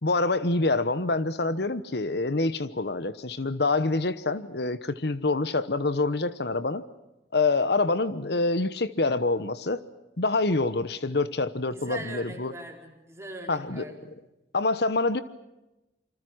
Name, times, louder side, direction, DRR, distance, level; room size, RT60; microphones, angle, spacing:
voice 1, 0.0-6.8 7.3-9.8 10.2-12.5 13.5-13.8 14.5-15.2, left 3 dB, 65° left, 13 dB, 1.1 m, -26 dB
voice 2, 11.7-14.2, right 1 dB, 15° right, 2 dB, 4.4 m, -41 dB
28.0 x 25.5 x 6.4 m, 0.97 s
head